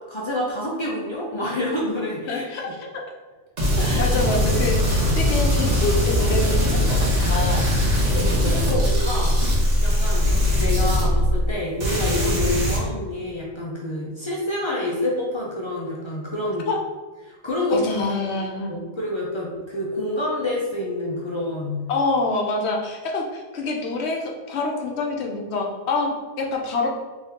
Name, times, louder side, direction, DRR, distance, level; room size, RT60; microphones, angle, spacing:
voice 1, 0.1-2.5 3.8-4.2 8.1-9.4 9.8-16.7 17.3-17.9 18.7-21.9, left 1 dB, 35° left, -4 dB, 0.4 m, -27 dB
voice 2, 2.3-2.9 3.9-7.7 16.7-16.8 17.7-18.8 21.9-26.9, left 3 dB, 70° left, 1 dB, 0.9 m, -26 dB
sound 1, 3.6-11.5 11.8-12.8, left 1 dB, 85° right, 1.5 m, -20 dB
3.5 x 3.2 x 2.8 m, 1.3 s
omnidirectional pair, 1.2 m